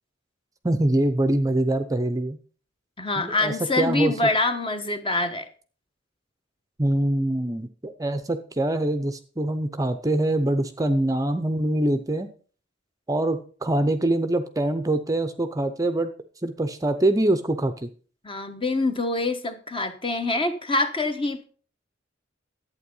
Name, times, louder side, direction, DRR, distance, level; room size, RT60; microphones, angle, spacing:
voice 1, 0.6-2.4 3.1-4.1 6.8-12.3 13.1-16.1 16.4-17.9, right 1 dB, 20° right, 9 dB, 0.7 m, -24 dB
voice 2, 3.0-5.5 18.2-21.4, left 2 dB, 25° left, 7 dB, 1.2 m, -25 dB
11.5 x 8.6 x 5.4 m, 0.42 s
head